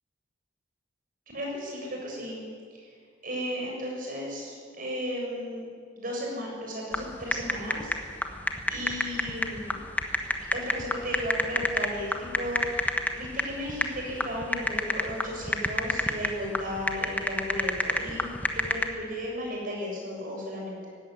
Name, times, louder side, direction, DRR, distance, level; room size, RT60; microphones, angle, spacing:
voice 1, 1.3-2.4 2.8-2.9 3.2-5.7 6.0-8.3 8.7-9.8 10.5-20.9, equal, 45° right, -1 dB, 7.4 m, -35 dB
sound 1, 6.9-18.9, left 1 dB, 10° left, 1.3 m, -29 dB
18.0 x 16.0 x 9.9 m, 2.2 s
head